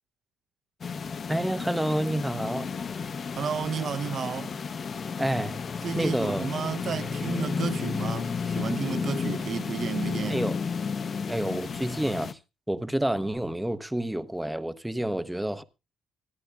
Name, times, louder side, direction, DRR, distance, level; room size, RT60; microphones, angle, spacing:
sound 1, 0.8-12.3, left 5 dB, 40° left, 0.7 m, -32 dB
voice 1, 1.3-2.7 5.2-5.6 6.0-6.5 10.3-10.6 11.3-12.4 12.7-15.6, right 1 dB, 5° right, 0.7 m, -29 dB
voice 2, 3.4-4.6 5.8-10.4, right 6 dB, 45° right, 0.7 m, -32 dB
25.0 x 10.5 x 2.3 m
cardioid pair, 125°, 0 cm